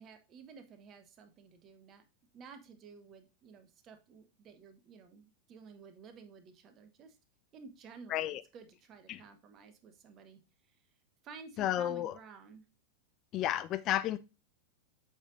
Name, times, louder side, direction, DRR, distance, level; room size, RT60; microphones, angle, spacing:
voice 1, 0.0-2.0 2.3-7.2 7.5-10.8 11.2-12.6, right 5 dB, 30° right, 1.0 m, -53 dB
voice 2, 8.1-8.4 9.1-9.2 11.6-12.1 13.3-14.2, left 12 dB, 35° left, 0.3 m, -32 dB
7.6 x 5.3 x 2.6 m
figure-of-eight pair, 90°, 0 cm